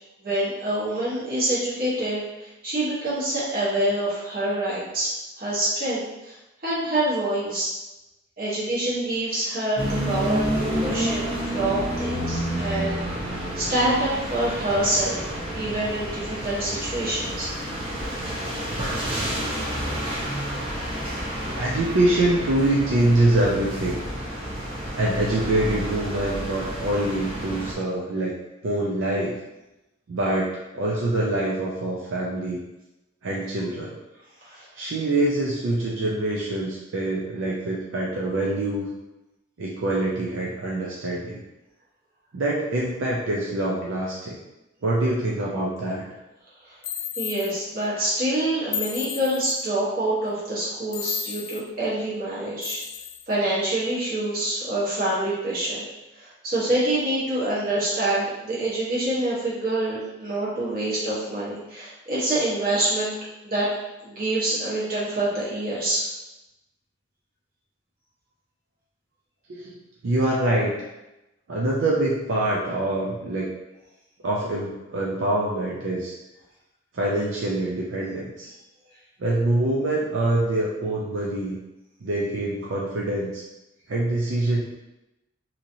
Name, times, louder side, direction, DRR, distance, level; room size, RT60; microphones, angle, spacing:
voice 1, 0.2-6.3 6.6-7.7 8.4-13.0 13.6-15.2 15.5-17.5 34.4-34.6 47.2-52.8 53.3-55.8 56.2-63.1 63.4-63.7 64.0-66.1, right 1 dB, 45° right, -8 dB, 1.1 m, -26 dB
sound 1, 9.8-27.7, equal, 25° right, 0.6 m, -30 dB
voice 2, 21.5-24.0 24.9-28.3 28.6-29.4 30.1-30.5 30.7-32.6 33.2-33.9 34.8-38.9 39.6-41.4 42.3-44.4 44.8-46.0 69.5-69.7 70.0-70.7 71.5-73.5 74.2-76.1 76.9-78.5 79.2-81.6 82.0-83.4 83.9-84.6, right 1 dB, 75° right, -4 dB, 0.5 m, -25 dB
sound 2, 46.8-47.5 48.7-49.6 50.9-51.6 52.6-53.3, left 8 dB, 70° left, 0.3 m, -32 dB
2.9 x 2.7 x 2.6 m, 0.97 s
head